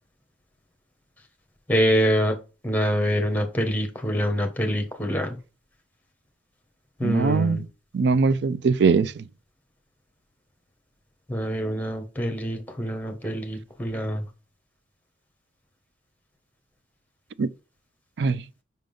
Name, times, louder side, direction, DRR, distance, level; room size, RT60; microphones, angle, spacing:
voice 1, 1.7-2.3 2.6-5.4 7.0-7.6 11.3-14.2, equal, 10° left, 1.1 m, -25 dB
voice 2, 7.0-7.6 7.9-9.1 17.4-17.5 18.2-18.4, right 4 dB, 65° right, 0.4 m, -21 dB
5.6 x 3.7 x 5.2 m
head